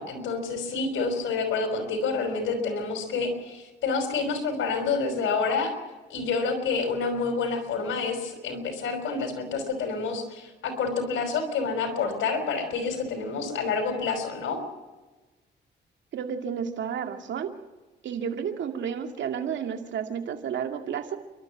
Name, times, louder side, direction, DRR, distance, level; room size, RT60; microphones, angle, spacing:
voice 1, 0.0-5.7 6.1-14.6, left 4 dB, 75° left, 5 dB, 5.5 m, -28 dB
voice 2, 16.1-17.5 18.0-21.2, right 7 dB, 65° right, 5 dB, 2.3 m, -31 dB
29.5 x 13.0 x 7.4 m, 1.2 s
cardioid pair, 90°, 20 cm